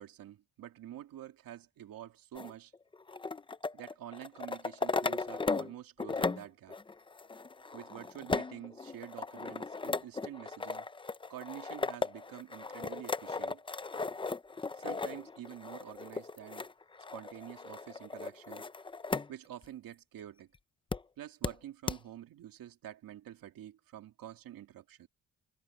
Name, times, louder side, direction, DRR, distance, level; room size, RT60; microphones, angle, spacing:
voice 1, 0.0-2.7 3.7-6.7 7.7-10.9 11.3-13.6 14.7-16.7 17.1-18.7 19.3-20.5 21.2-25.1, right 12 dB, 80° right, 2.3 m, -48 dB
sound 1, 2.3-5.7 6.0-19.3 19.6-19.7 20.9-21.0 21.4-21.5 21.9-22.0, left 4 dB, 15° left, 0.6 m, -37 dB
cardioid pair, 140°, 34 cm